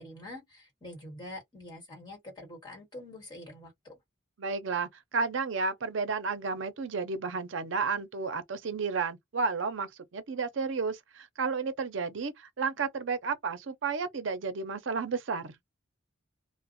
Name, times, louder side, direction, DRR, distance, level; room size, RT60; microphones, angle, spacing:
voice 1, 0.0-4.0, left 1 dB, 20° left, 1.5 m, -45 dB
voice 2, 4.4-15.6, right 4 dB, 65° right, 0.5 m, -32 dB
2.4 x 2.1 x 2.5 m
head